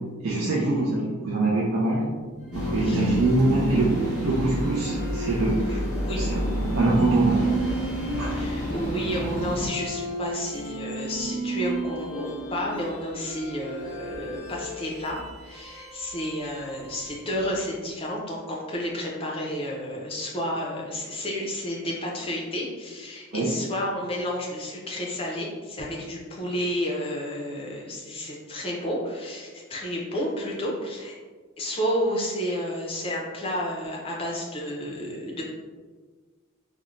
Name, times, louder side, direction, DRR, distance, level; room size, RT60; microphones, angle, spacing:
voice 1, 0.2-2.1 2.6-5.8 6.2-6.4 6.8-7.5 8.2-8.3 23.3-23.5, right 2 dB, 60° right, -6 dB, 0.4 m, -24 dB
sound 1, 2.4-17.5, right 3 dB, 45° right, 1.3 m, -33 dB
sound 2, 2.5-9.7, equal, ahead, 1.4 m, -29 dB
voice 2, 5.9-6.4 8.3-31.2 31.6-35.4, equal, 25° left, -2 dB, 0.4 m, -31 dB
3.0 x 2.1 x 2.4 m, 1.4 s
head